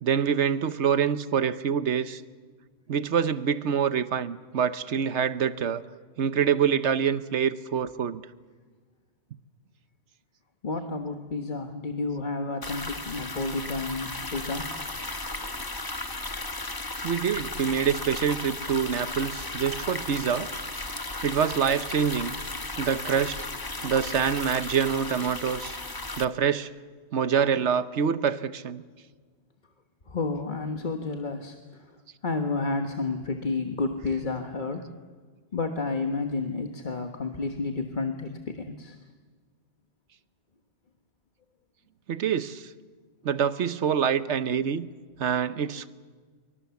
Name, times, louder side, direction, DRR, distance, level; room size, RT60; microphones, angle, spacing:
voice 1, 0.0-2.2 2.9-5.8 6.2-8.2 17.0-20.5 21.2-22.4 22.8-23.4 23.8-25.8 26.2-26.7 27.1-28.8 42.1-42.7 43.2-44.9 45.2-45.9, right 7 dB, 80° right, 13 dB, 1.2 m, -26 dB
voice 2, 10.6-14.7 30.1-31.6 32.2-34.9 35.5-39.0, left 3 dB, 45° left, 5 dB, 1.5 m, -31 dB
sound 1, 12.6-26.2, left 2 dB, 20° left, 1.0 m, -35 dB
25.5 x 23.5 x 7.1 m, 1.5 s
omnidirectional pair, 1.2 m